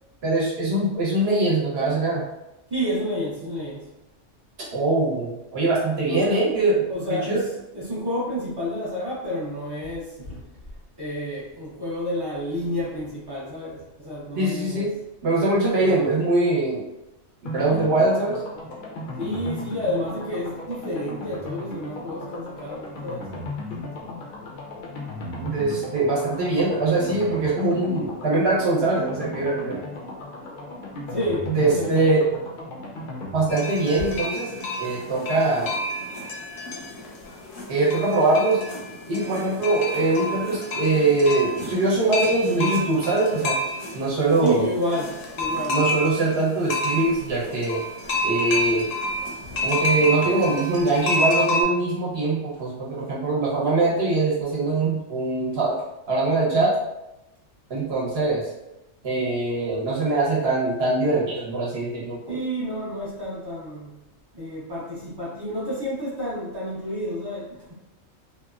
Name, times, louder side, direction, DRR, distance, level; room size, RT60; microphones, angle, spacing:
voice 1, 0.2-2.3 4.7-6.8 7.1-7.4 14.4-14.9 15.2-16.8 17.4-18.4 25.4-29.8 31.5-32.2 33.3-35.7 37.7-38.6 39.1-43.6 43.9-44.7 45.7-47.8 48.2-48.9 49.6-55.8 56.1-56.8 57.7-58.5 59.0-62.4, right 2 dB, 55° right, -5 dB, 1.0 m, -22 dB
voice 2, 2.7-3.9 6.1-6.5 6.9-10.4 11.0-14.9 15.8-16.1 19.2-23.3 31.1-32.0 44.4-45.8 49.4-49.5 62.3-64.0 64.3-67.7, equal, 30° right, -9 dB, 0.5 m, -30 dB
sound 1, 17.5-36.1 36.3-36.4 36.7-36.8, left 1 dB, 60° left, 0.6 m, -36 dB
sound 2, 33.5-51.6, left 1 dB, 75° left, 0.9 m, -29 dB
2.9 x 2.1 x 2.3 m, 0.93 s
omnidirectional pair, 1.3 m